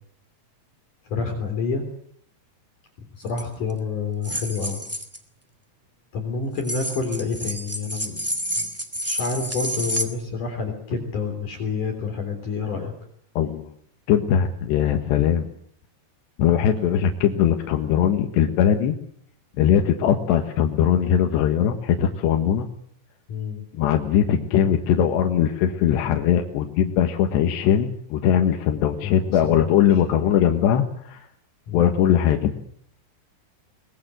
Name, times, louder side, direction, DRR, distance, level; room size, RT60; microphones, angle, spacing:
voice 1, 1.1-1.8 3.2-4.8 6.1-8.2 8.5-8.7 9.0-12.9 23.3-23.6 29.0-30.0 31.7-31.9, left 4 dB, 45° left, 5 dB, 4.7 m, -28 dB
sound 1, 3.3-3.4 4.2-5.2 6.6-10.0, equal, 15° right, 0.5 m, -29 dB
voice 2, 13.4-13.7 14.1-15.5 16.4-19.0 19.6-22.7 23.7-31.3 31.7-32.5, left 9 dB, 75° left, 4 dB, 3.6 m, -20 dB
23.5 x 21.0 x 7.7 m, 0.65 s
omnidirectional pair, 5.2 m